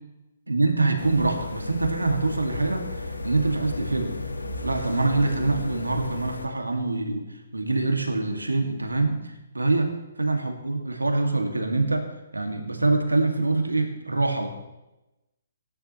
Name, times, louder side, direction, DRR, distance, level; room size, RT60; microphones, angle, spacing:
voice 1, 0.5-4.1 4.6-14.5, right 3 dB, 85° right, 4 dB, 2.0 m, -25 dB
sound 1, 1.0-6.5, left 2 dB, 85° left, 1.3 m, -34 dB
16.5 x 10.5 x 3.1 m, 1.0 s
figure-of-eight pair, 130°, 0 cm